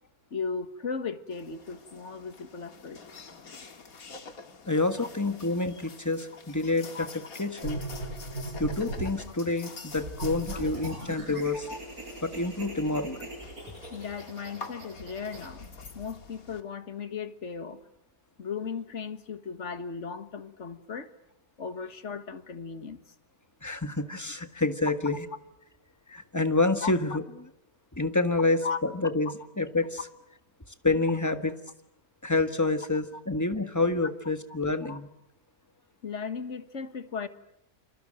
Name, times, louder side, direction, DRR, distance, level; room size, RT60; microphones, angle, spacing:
voice 1, 0.3-3.0 5.0-5.1 6.9-7.1 10.5-10.6 11.7-11.8 13.9-17.8 18.4-21.1 21.6-23.0 26.8-27.2 28.6-28.8 34.9-35.0 36.0-37.3, left 5 dB, 55° left, 10 dB, 1.9 m, -36 dB
sound 1, 1.3-16.6, left 4 dB, 75° left, 2.5 m, -47 dB
voice 2, 4.7-7.8 8.6-11.7 12.2-13.2 23.6-25.2 26.1-27.2 27.9-30.0 30.8-31.5 32.2-35.1, left 2 dB, 10° left, 9 dB, 1.5 m, -28 dB
sound 2, 7.6-9.2 9.9-15.5, right 2 dB, 80° right, 6.2 m, -39 dB
29.0 x 27.0 x 7.7 m, 0.79 s
omnidirectional pair, 1.5 m